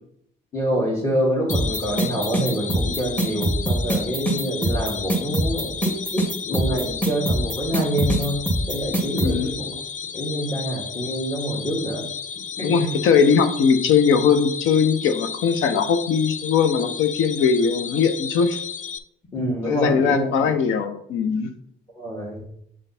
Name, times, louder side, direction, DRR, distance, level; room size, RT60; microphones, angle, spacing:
voice 1, 0.5-9.8 10.1-12.1 12.6-12.9 19.3-20.3 21.9-22.4, right 1 dB, 25° left, -4 dB, 1.6 m, -26 dB
sound 1, 1.5-19.0, left 6 dB, 40° left, 0.4 m, -33 dB
sound 2, 1.5-9.3, right 1 dB, 10° left, 1.5 m, -23 dB
voice 2, 9.2-9.5 12.6-18.6 19.6-21.5, left 6 dB, 85° left, 9 dB, 0.6 m, -20 dB
7.3 x 3.3 x 4.2 m, 0.73 s
cardioid pair, 90°, 20 cm